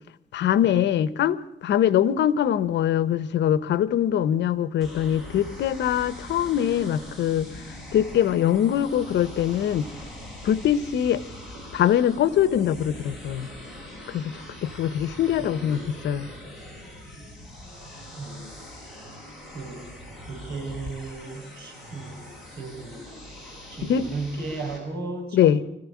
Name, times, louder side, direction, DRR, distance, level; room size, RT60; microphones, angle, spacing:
voice 1, 0.3-7.5 7.9-9.9 10.4-11.2 11.7-13.5 14.1-14.3 14.6-16.3 23.8-24.1 25.3-25.6, left 10 dB, 70° left, 16 dB, 1.1 m, -23 dB
sound 1, 4.8-24.8, left 1 dB, ahead, 7.9 m, -42 dB
voice 2, 15.4-15.9 18.2-18.7 19.5-19.8 20.3-23.2 23.7-25.6, right 3 dB, 65° right, 1 dB, 7.3 m, -36 dB
25.5 x 15.0 x 8.6 m, 0.86 s
cardioid pair, 165°, 19 cm